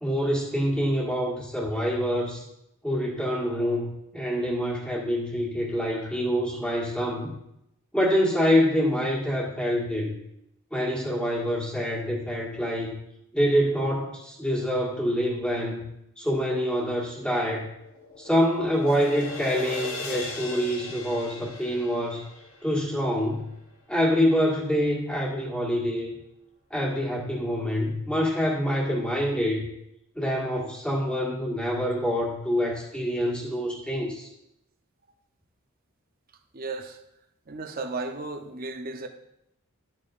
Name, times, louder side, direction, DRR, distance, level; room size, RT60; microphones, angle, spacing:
voice 1, 0.0-2.4 2.8-7.3 7.9-10.1 10.7-13.0 13.3-15.9 16.2-17.7 18.2-22.2 22.6-23.5 23.9-26.1 26.7-29.7 30.1-34.3, equal, 5° left, -4 dB, 1.7 m, -26 dB
sound 1, 17.4-23.6, left 2 dB, 70° left, 1.3 m, -39 dB
voice 2, 36.5-37.0 37.5-39.1, right 3 dB, 45° right, 5 dB, 0.7 m, -34 dB
12.0 x 7.4 x 2.5 m, 0.81 s
head